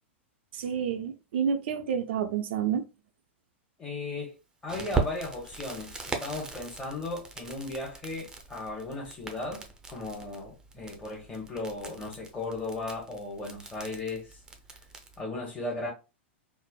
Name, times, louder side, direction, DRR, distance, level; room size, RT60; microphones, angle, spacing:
voice 1, 0.5-2.9, right 7 dB, 65° right, 0.4 m, -29 dB
voice 2, 3.8-4.3 4.6-14.4 15.2-15.9, left 2 dB, 15° left, 0.9 m, -36 dB
Crackle, 4.7-15.2, right 4 dB, 10° right, 0.5 m, -39 dB
3.2 x 2.0 x 2.2 m
hypercardioid pair, 105°, 7 cm